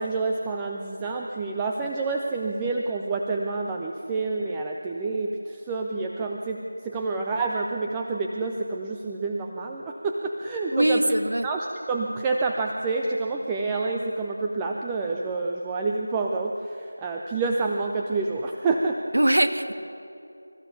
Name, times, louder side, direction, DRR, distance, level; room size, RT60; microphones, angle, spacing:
voice 1, 0.0-11.0 11.4-19.0, right 3 dB, 10° right, 0 dB, 0.5 m, -28 dB
voice 2, 10.7-11.5 19.1-19.7, right 1 dB, 60° right, 8 dB, 1.5 m, -21 dB
25.5 x 14.5 x 7.1 m, 2.7 s
figure-of-eight pair, 170°, 0 cm